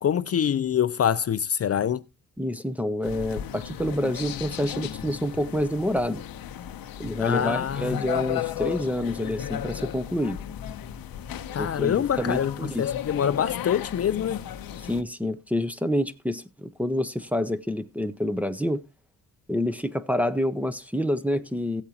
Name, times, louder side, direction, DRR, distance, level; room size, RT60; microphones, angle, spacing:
voice 1, 0.0-2.0 7.2-8.0 11.5-14.4, left 9 dB, 45° left, 0.5 m, -25 dB
voice 2, 2.4-6.2 7.0-10.4 11.6-12.9 14.8-18.8 19.5-21.8, left 1 dB, 5° right, 0.7 m, -28 dB
sound 1, 3.0-15.0, left 11 dB, 90° left, 0.8 m, -35 dB
16.0 x 8.5 x 2.8 m
wide cardioid pair, 125°, 34 cm